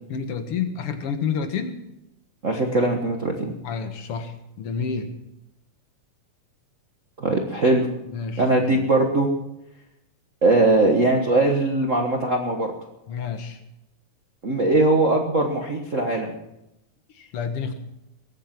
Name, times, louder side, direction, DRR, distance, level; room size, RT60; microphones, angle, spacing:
voice 1, 0.1-1.8 3.6-5.1 8.1-8.8 13.1-13.6 17.1-17.8, left 6 dB, 55° left, 7 dB, 2.2 m, -29 dB
voice 2, 2.4-3.5 7.2-7.9 8.4-9.3 10.4-12.7 14.4-16.3, right 2 dB, 40° right, 1 dB, 1.1 m, -20 dB
23.0 x 9.2 x 6.0 m, 0.88 s
omnidirectional pair, 3.3 m